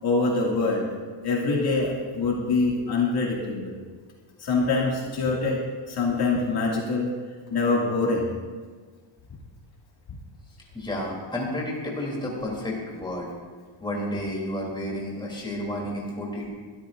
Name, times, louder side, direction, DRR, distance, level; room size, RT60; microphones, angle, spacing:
voice 1, 0.0-0.9 1.2-3.8 4.4-5.6 5.9-7.1 7.5-8.3, left 3 dB, 50° left, -3 dB, 2.3 m, -24 dB
voice 2, 10.7-13.3 13.8-16.5, left 1 dB, 10° left, -3 dB, 3.1 m, -31 dB
22.0 x 13.0 x 2.6 m, 1.5 s
cardioid pair, 160°, 49 cm